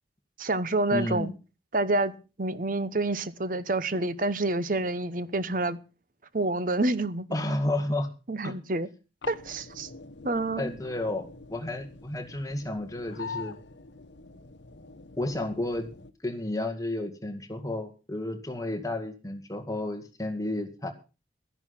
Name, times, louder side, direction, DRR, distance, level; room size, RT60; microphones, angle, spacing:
voice 1, 0.4-1.3 1.7-2.1 2.4-5.8 6.3-7.3 8.3-8.9 9.3-9.9 10.2-10.7, right 2 dB, 50° right, 15 dB, 0.9 m, -28 dB
voice 2, 0.9-1.3 7.3-8.1 8.4-8.5 10.6-13.6 15.2-15.9 16.2-20.9, left 1 dB, 20° left, 5 dB, 2.0 m, -31 dB
sound 1, 9.2-16.1, left 4 dB, 85° left, 1.0 m, -44 dB
13.5 x 10.5 x 5.8 m, 0.33 s
head